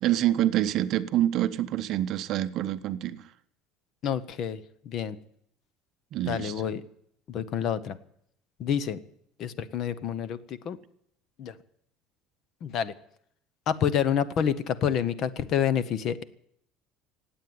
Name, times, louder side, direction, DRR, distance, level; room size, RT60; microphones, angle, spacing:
voice 1, 0.0-3.2 6.1-6.5, right 12 dB, 45° right, 0.7 m, -26 dB
voice 2, 4.0-4.6 4.8-5.2 6.2-6.8 7.3-8.0 8.6-9.0 9.4-10.8 11.4-11.5 12.6-12.9 13.7-16.2, left 8 dB, 40° left, 0.8 m, -28 dB
17.0 x 8.6 x 9.5 m
cardioid pair, 170°, 0 cm